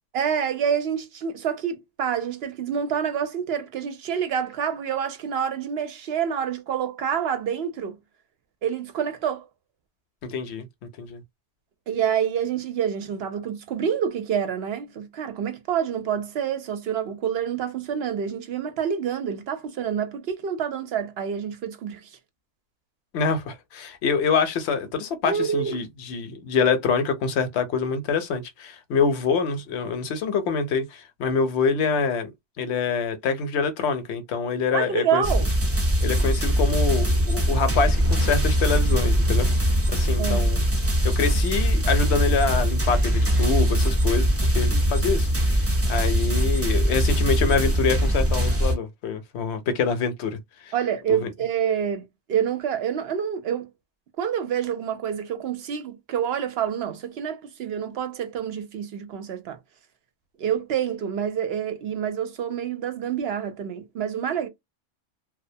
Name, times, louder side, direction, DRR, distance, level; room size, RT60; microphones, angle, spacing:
voice 1, 0.1-8.0 8.6-9.4 11.9-22.1 25.3-25.8 34.7-35.5 40.2-40.5 50.7-53.7 54.2-59.6 60.4-64.5, right 8 dB, 65° right, 0.7 m, -27 dB
voice 2, 10.2-10.7 11.0-11.2 23.1-32.3 32.6-35.2 36.0-40.6 41.0-50.7 51.1-51.3, left 5 dB, 70° left, 0.8 m, -26 dB
sound 1, 35.2-48.7, equal, 25° right, 0.3 m, -22 dB
2.4 x 2.1 x 2.6 m
omnidirectional pair, 1.2 m